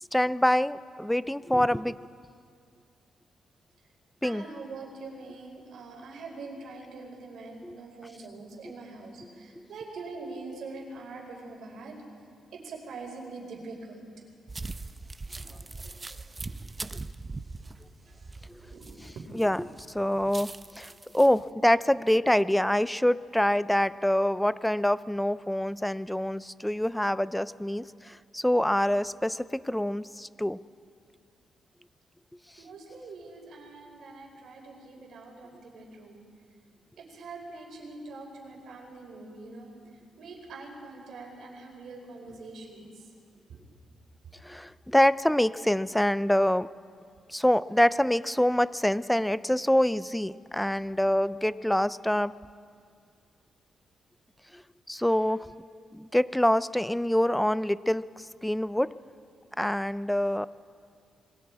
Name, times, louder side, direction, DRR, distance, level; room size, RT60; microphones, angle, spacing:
voice 1, 0.1-2.1 4.2-4.4 7.6-7.8 18.5-18.6 19.3-19.6 19.9-30.6 44.4-46.7 47.3-52.3 54.5-54.6 54.9-55.5 55.9-58.1 58.4-59.0 59.6-60.5, left 1 dB, 5° left, 16 dB, 0.5 m, -25 dB
voice 2, 4.2-11.9 12.5-14.0 15.4-15.5 16.4-16.5 18.1-18.3 18.6-19.1 32.6-36.2 37.0-39.7 40.2-43.1 43.5-43.6, right 3 dB, 75° right, 0 dB, 5.0 m, -44 dB
sound 1, 14.5-19.4 19.8-21.4, right 3 dB, 25° right, 0.7 m, -41 dB
26.5 x 21.5 x 4.8 m, 2.2 s
cardioid pair, 90°, 0 cm